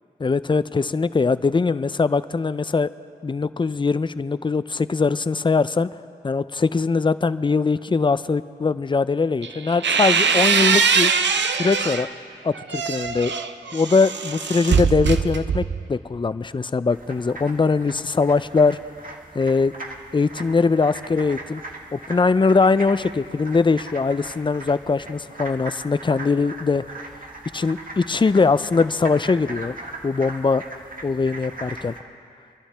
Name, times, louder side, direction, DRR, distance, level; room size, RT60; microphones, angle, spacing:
voice 1, 0.2-2.9 3.2-5.9 6.2-11.1 11.6-12.1 12.4-13.3 13.7-15.6 15.9-18.8 19.3-19.7 20.1-21.6 21.9-26.8 27.5-29.7 30.0-30.6 31.0-31.9, left 4 dB, 25° left, 15 dB, 0.4 m, -21 dB
sound 1, 9.4-12.1 12.5-15.9, right 5 dB, 85° right, 0.6 m, -22 dB
sound 2, 16.9-32.0, right 2 dB, 50° right, 1.4 m, -39 dB
25.5 x 11.5 x 3.3 m, 2.5 s
cardioid pair, 45°, 18 cm